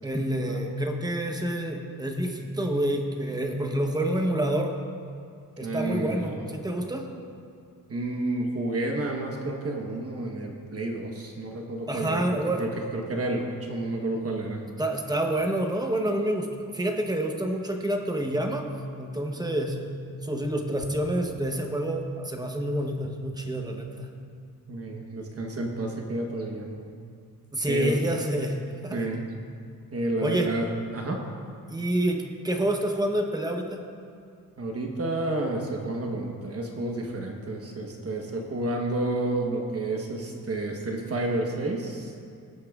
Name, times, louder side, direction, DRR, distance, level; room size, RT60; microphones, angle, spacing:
voice 1, 0.0-4.8 5.6-7.1 11.9-12.7 14.8-18.7 19.0-19.8 20.2-24.1 27.5-29.1 30.2-30.5 31.7-33.8, right 1 dB, 10° right, 3 dB, 0.8 m, -28 dB
voice 2, 5.6-6.4 7.9-12.2 12.6-14.6 24.7-26.9 27.7-27.9 28.9-29.2 29.9-30.7 30.9-31.2 34.6-42.1, right 2 dB, 40° right, 1 dB, 1.1 m, -30 dB
18.5 x 8.5 x 2.4 m, 2.3 s
wide cardioid pair, 155°, 36 cm